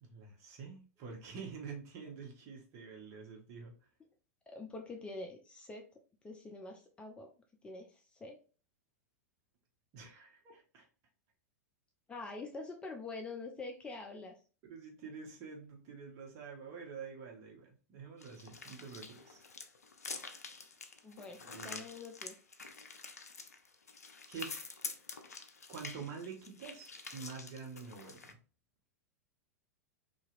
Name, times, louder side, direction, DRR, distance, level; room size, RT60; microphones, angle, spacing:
voice 1, 0.0-3.7 9.9-10.9 14.6-19.5 21.4-21.8 24.3-24.6 25.7-28.4, right 5 dB, 40° right, 1 dB, 1.0 m, -47 dB
voice 2, 4.5-5.9 6.2-7.3 7.6-8.4 12.1-14.4 21.0-22.3, left 3 dB, 10° left, 1 dB, 0.4 m, -45 dB
sound 1, 18.2-28.3, left 4 dB, 75° left, 0.4 m, -47 dB
2.8 x 2.7 x 2.4 m, 0.36 s
figure-of-eight pair, 95°, 8 cm